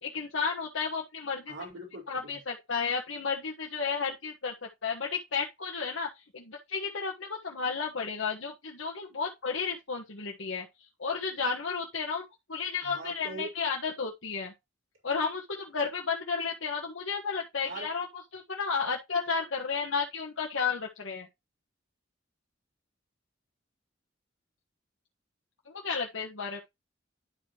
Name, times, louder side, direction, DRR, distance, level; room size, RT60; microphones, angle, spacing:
voice 1, 0.0-1.5 2.1-6.1 6.3-10.6 11.0-14.5 15.0-18.1 18.3-21.3 25.7-26.6, left 5 dB, 85° left, 1.4 m, -32 dB
voice 2, 1.5-2.4 12.8-13.5 17.6-17.9, right 2 dB, 80° right, 4.3 m, -41 dB
11.5 x 4.8 x 3.0 m
head